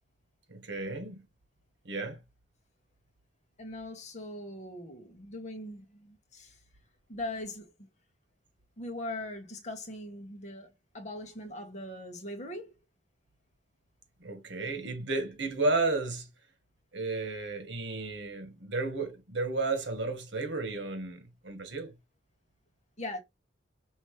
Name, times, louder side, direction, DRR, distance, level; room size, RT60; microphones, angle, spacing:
voice 1, 0.5-1.2 1.8-2.2 14.2-16.3 16.9-21.9, right 3 dB, 80° right, 1.4 m, -33 dB
voice 2, 3.6-6.6 7.1-7.7 8.8-12.7 23.0-23.2, left 1 dB, 40° left, 1.2 m, -40 dB
5.6 x 3.0 x 3.1 m
head